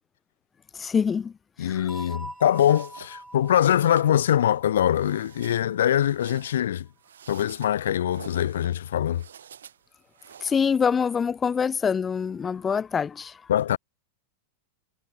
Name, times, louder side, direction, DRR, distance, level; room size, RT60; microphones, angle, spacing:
voice 1, 0.7-1.3 1.6-1.9 10.4-13.4, left 6 dB, 20° left, 0.6 m, -25 dB
voice 2, 1.6-6.9 7.3-9.2 13.5-13.8, left 10 dB, 60° left, 1.4 m, -23 dB
sound 1, 1.9-6.5, right 1 dB, 5° right, 2.6 m, -44 dB
sound 2, 2.2-10.6, right 9 dB, 65° right, 7.0 m, -50 dB
figure-of-eight pair, 90°, 0 cm